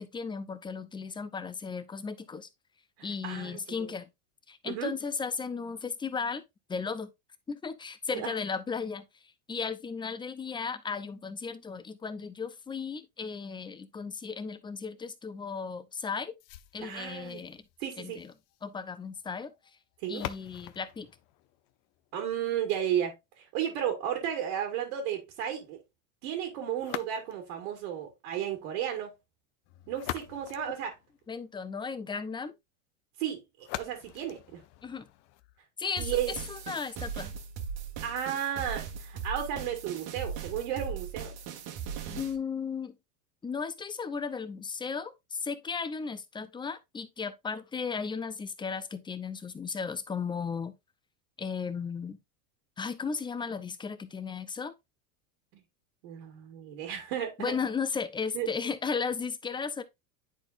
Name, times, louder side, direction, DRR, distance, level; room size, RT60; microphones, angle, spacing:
voice 1, 0.0-2.5 3.0-4.1 4.5-6.4 6.7-7.1 7.5-9.0 9.5-16.3 16.7-17.6 18.0-18.3 18.6-19.5 20.1-21.1 31.3-32.5 34.8-35.1 35.8-37.3 42.1-43.0 43.4-50.7 51.4-52.2 52.8-54.7 57.4-59.8, left 5 dB, 10° left, 0.6 m, -35 dB
voice 2, 3.0-3.9 4.7-4.9 8.1-8.3 16.8-17.4 17.8-18.2 20.0-20.2 22.1-25.8 26.2-29.2 29.9-30.9 33.2-34.6 36.0-36.3 38.0-41.4 55.5-55.6 56.0-57.5 58.3-58.5, right 9 dB, 70° right, 1.9 m, -33 dB
sound 1, 16.4-22.4 26.8-27.6 29.6-31.6 33.6-35.6, left 14 dB, 55° left, 0.7 m, -44 dB
sound 2, 36.0-42.4, right 7 dB, 50° right, 1.4 m, -39 dB
10.0 x 4.3 x 2.5 m
supercardioid pair, 125°, 41 cm